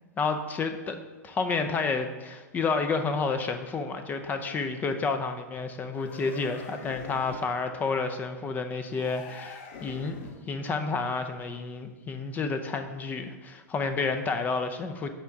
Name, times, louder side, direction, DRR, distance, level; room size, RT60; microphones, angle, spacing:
voice 1, 0.2-1.0 1.2-10.2 10.5-15.1, left 4 dB, 20° left, 8 dB, 0.6 m, -30 dB
sound 1, 5.9-7.6 8.9-10.5, left 4 dB, 45° left, 1.0 m, -44 dB
10.0 x 3.4 x 6.1 m, 1.3 s
figure-of-eight pair, 95°, 9 cm